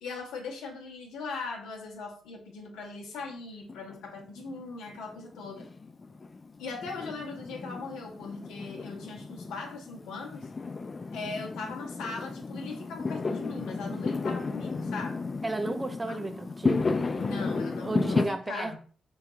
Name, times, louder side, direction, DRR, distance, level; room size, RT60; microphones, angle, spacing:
voice 1, 0.0-5.7 6.6-10.5 11.1-15.3 16.1-16.2 17.2-18.8, left 4 dB, 75° left, 0.6 m, -39 dB
Fireworks, 3.7-18.3, left 4 dB, 40° left, 0.4 m, -33 dB
voice 2, 15.4-16.9 17.8-18.7, right 2 dB, 25° right, 0.4 m, -33 dB
3.7 x 2.3 x 2.9 m
hypercardioid pair, 40°, 0 cm